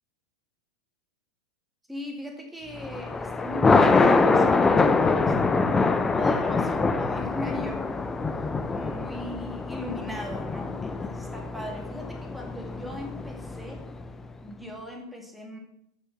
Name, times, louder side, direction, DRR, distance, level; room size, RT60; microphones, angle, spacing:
voice 1, 1.9-13.9 14.4-15.6, left 1 dB, 5° right, 1 dB, 2.2 m, -39 dB
Thunder, 2.8-14.1, left 3 dB, 15° left, 0.6 m, -24 dB
7.7 x 6.5 x 5.6 m, 0.74 s
figure-of-eight pair, 90°, 3 cm